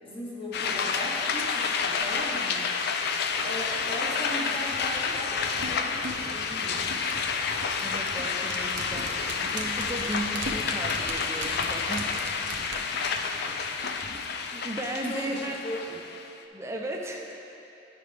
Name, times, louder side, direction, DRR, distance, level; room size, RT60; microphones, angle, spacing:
voice 1, 0.0-7.0 13.4-13.5 15.0-15.4 15.6-15.8, left 1 dB, 30° left, -5 dB, 1.3 m, -38 dB
sound 1, 0.5-16.3, left 5 dB, 60° left, 0.4 m, -29 dB
sound 2, 4.7-14.1 14.4-14.5, right 2 dB, 85° right, 0.7 m, -39 dB
voice 2, 7.8-9.1 9.4-12.2 14.1-14.2 14.5-15.5 16.5-17.4, right 1 dB, 15° right, 0 dB, 0.6 m, -35 dB
9.3 x 5.8 x 3.4 m, 2.7 s
head